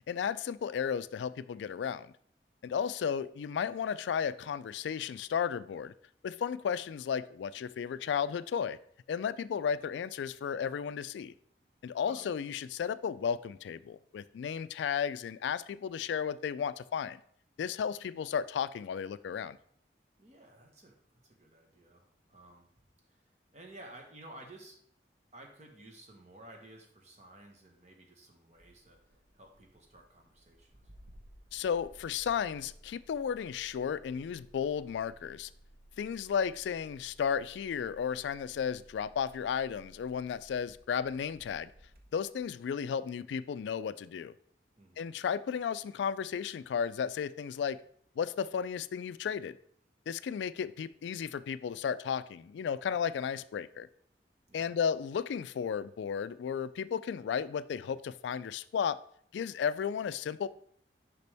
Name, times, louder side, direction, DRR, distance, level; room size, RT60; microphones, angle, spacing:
voice 1, 0.1-2.1 2.6-5.9 6.2-8.8 9.1-11.3 11.8-17.2 17.6-19.6 31.5-35.5 36.0-41.7 42.1-44.3 45.0-47.8 48.2-49.6 50.1-53.9 54.5-59.0 59.3-60.5, left 7 dB, 80° left, 15 dB, 0.3 m, -34 dB
voice 2, 20.2-22.7 23.1-24.8 25.3-30.8 44.8-45.1 52.9-53.0 54.5-54.7, right 1 dB, 40° right, 2 dB, 1.2 m, -54 dB
Engine starting, 28.5-42.7, right 1 dB, 55° right, 0.9 m, -59 dB
6.7 x 5.3 x 3.4 m, 0.62 s
head